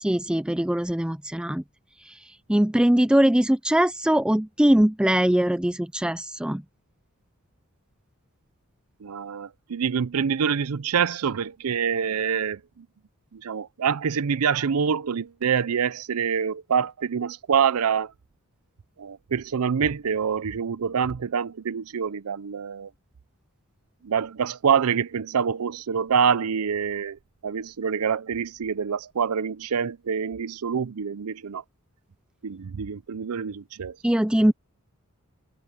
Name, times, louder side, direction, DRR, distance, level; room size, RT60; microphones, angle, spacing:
voice 1, 0.0-1.6 2.5-6.6 34.0-34.5, right 1 dB, 5° right, 0.4 m, -21 dB
voice 2, 9.0-12.9 13.3-18.1 19.0-22.9 24.0-31.6 32.4-34.0, right 7 dB, 90° right, 0.5 m, -26 dB
head